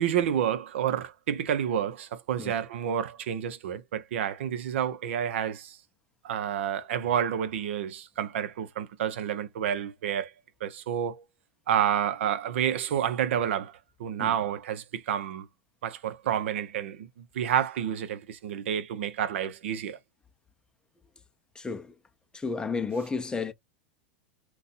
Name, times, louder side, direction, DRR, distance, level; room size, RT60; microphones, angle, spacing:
voice 1, 0.0-5.8 6.2-10.3 10.6-11.2 11.7-15.5 15.8-20.0, right 9 dB, 75° right, 0.7 m, -29 dB
voice 2, 21.5-22.0 22.3-23.5, left 4 dB, 10° left, 0.6 m, -32 dB
2.7 x 2.3 x 4.1 m
hypercardioid pair, 100°, 7 cm